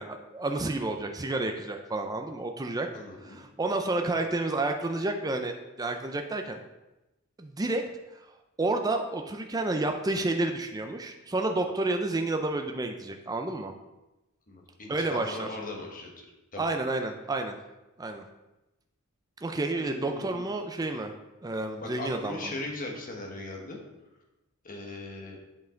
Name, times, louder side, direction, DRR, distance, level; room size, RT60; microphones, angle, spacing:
voice 1, 0.0-2.9 3.2-6.6 7.4-7.8 8.6-13.7 14.9-15.5 16.6-17.6 18.0-18.2 19.4-21.1 21.4-22.5, right 2 dB, 15° right, 5 dB, 0.5 m, -30 dB
voice 2, 2.9-3.4 14.5-16.3 16.5-16.6 19.7-20.5 21.8-23.8 24.6-25.4, left 2 dB, 40° left, 1 dB, 1.3 m, -39 dB
8.2 x 5.4 x 3.8 m, 1.0 s
head